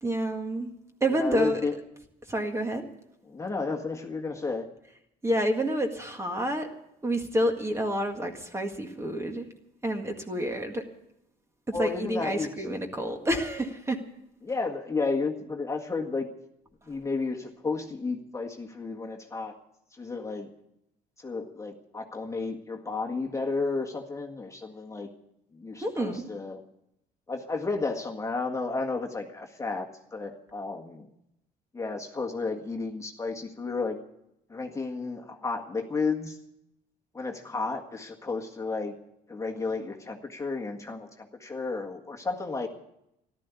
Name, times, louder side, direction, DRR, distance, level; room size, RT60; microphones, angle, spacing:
voice 1, 0.0-0.7 1.0-1.6 2.3-2.8 5.2-6.7 7.0-9.5 9.8-10.8 11.7-14.0 25.8-26.3, right 1 dB, 15° right, 4 dB, 1.8 m, -28 dB
voice 2, 1.1-1.7 3.2-4.7 11.7-12.5 14.4-16.3 16.9-19.5 20.0-20.5 21.2-25.1 25.5-26.6 27.3-29.9 30.1-31.1 31.7-34.0 34.5-36.4 37.1-39.0 39.3-42.7, left 4 dB, 15° left, 2 dB, 1.7 m, -32 dB
14.0 x 12.5 x 8.2 m, 0.81 s
cardioid pair, 110°, 17 cm